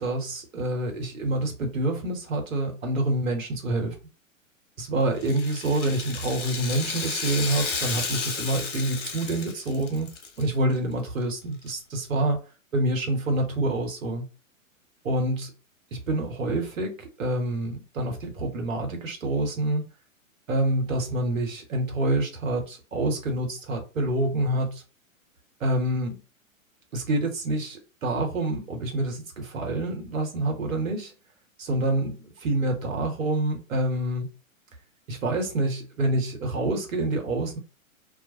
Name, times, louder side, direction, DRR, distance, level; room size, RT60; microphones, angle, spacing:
voice 1, 0.0-3.9 4.8-10.1 10.4-12.4 12.7-14.2 15.0-15.5 15.9-19.8 20.5-24.8 25.6-26.2 26.9-31.1 31.6-34.3 35.1-37.6, right 1 dB, 70° right, 1.1 m, -27 dB
Rattle (instrument), 5.2-10.4 10.7-10.8 11.7-11.8, left 5 dB, 55° left, 0.9 m, -32 dB
2.4 x 2.1 x 2.7 m
figure-of-eight pair, 110°, 41 cm